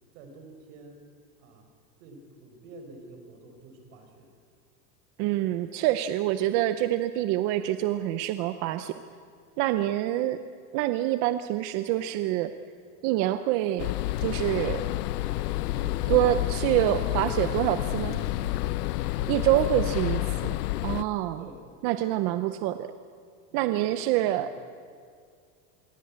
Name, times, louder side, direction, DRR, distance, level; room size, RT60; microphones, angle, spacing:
voice 1, 0.1-1.1 1.4-1.7 2.0-4.3 14.8-17.7 19.2-20.1 21.4-21.7 23.5-24.6, right 2 dB, 55° right, 5 dB, 5.4 m, -47 dB
voice 2, 5.2-9.0 9.6-10.4 10.7-12.5 13.0-13.9 14.2-14.8 16.1-18.2 19.3-20.2 20.8-21.4 21.8-22.9 23.5-24.5, right 14 dB, 35° right, 11 dB, 0.6 m, -26 dB
sound 1, 13.8-21.0, left 16 dB, 85° left, 0.9 m, -29 dB
sound 2, 14.2-15.1 15.3-15.5 18.1-19.4, left 6 dB, 40° left, 3.4 m, -45 dB
26.5 x 23.0 x 8.6 m, 2.2 s
supercardioid pair, 170°, 45 cm